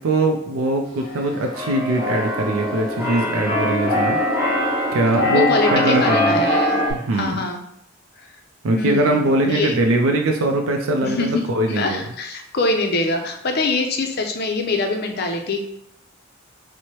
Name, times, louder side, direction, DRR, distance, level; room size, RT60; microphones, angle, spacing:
voice 1, 0.0-4.6 4.9-6.4 6.9-7.4 8.6-12.0, right 2 dB, 85° right, 3 dB, 0.4 m, -21 dB
Keyboard (musical), 1.0-6.9, left 1 dB, 5° right, 1.4 m, -22 dB
voice 2, 5.3-6.8 7.1-7.6 8.8-9.7 11.0-15.6, left 3 dB, 50° left, 4 dB, 0.5 m, -24 dB
4.5 x 2.1 x 2.8 m, 0.76 s
head